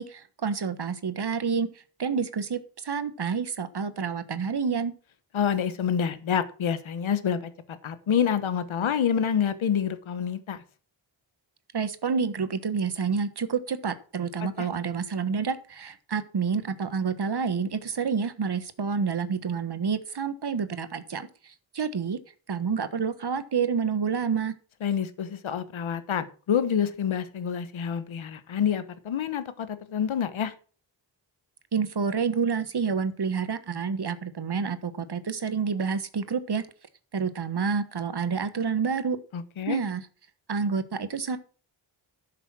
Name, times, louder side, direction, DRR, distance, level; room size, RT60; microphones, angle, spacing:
voice 1, 0.0-1.7 2.0-4.9 11.7-21.3 21.7-22.2 22.5-24.5 31.7-36.7 37.1-39.2 39.7-40.0 40.5-41.4, right 6 dB, 55° right, 12 dB, 1.4 m, -28 dB
voice 2, 5.3-10.6 14.6-14.7 24.8-30.5 39.3-39.8, left 8 dB, 90° left, 13 dB, 1.2 m, -27 dB
11.5 x 6.7 x 6.2 m, 0.40 s
cardioid pair, 50°, 46 cm